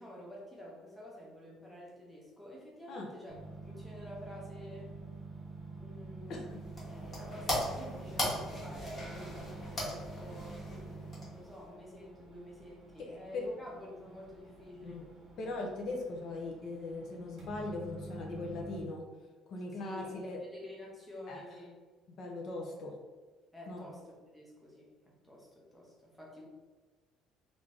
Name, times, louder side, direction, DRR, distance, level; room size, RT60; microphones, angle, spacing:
voice 1, 0.0-3.4 3.6-4.9 5.7-6.5 7.2-10.6 11.3-15.1 19.7-21.8 23.5-26.5, left 1 dB, ahead, -4 dB, 0.7 m, -49 dB
sound 1, 3.3-18.8, right 3 dB, 30° right, 1.3 m, -48 dB
sound 2, 6.3-11.7, left 1 dB, 20° left, 1.1 m, -39 dB
voice 2, 13.1-13.4 14.8-15.0 15.4-19.0 19.5-20.4 21.3-21.4 22.2-22.9 23.7-23.9, left 2 dB, 45° left, 0 dB, 0.5 m, -40 dB
3.3 x 2.5 x 3.3 m, 1.4 s
cardioid pair, 170°, 0 cm